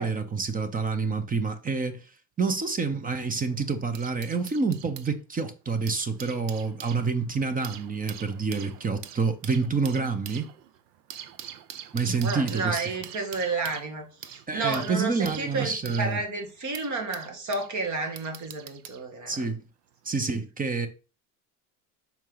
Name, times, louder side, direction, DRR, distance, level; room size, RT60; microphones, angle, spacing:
voice 1, 0.0-2.0 2.4-10.5 11.9-12.8 14.5-16.2 19.3-19.6 20.0-20.9, right 4 dB, 20° right, 0.9 m, -28 dB
sound 1, 3.0-5.1 5.7-17.7 18.2-19.0 19.9-20.1, right 10 dB, 85° right, 0.8 m, -44 dB
voice 2, 12.2-19.5, right 3 dB, 40° right, 2.0 m, -31 dB
5.8 x 4.4 x 4.0 m
supercardioid pair, 100°, 46 cm